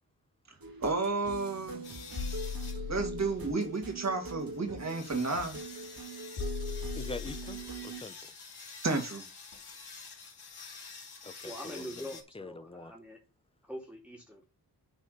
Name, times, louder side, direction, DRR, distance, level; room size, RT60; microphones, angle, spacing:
sound 1, 0.6-8.0, right 3 dB, 60° right, 2.1 m, -42 dB
voice 1, 0.8-1.8 2.9-5.6 8.8-9.2, right 3 dB, 40° right, 2.3 m, -32 dB
sound 2, 1.8-12.2, left 5 dB, 70° left, 3.0 m, -48 dB
sound 3, 2.2-3.4 5.3-5.4 6.4-7.7 9.5-9.6 10.1-10.2, left 6 dB, 90° left, 3.1 m, -38 dB
voice 2, 7.0-8.2 11.2-11.9 12.3-12.9, left 3 dB, 15° left, 0.8 m, -44 dB
voice 3, 11.4-13.2 13.7-14.4, equal, 5° right, 2.4 m, -43 dB
8.1 x 4.2 x 6.7 m
wide cardioid pair, 100°, 39 cm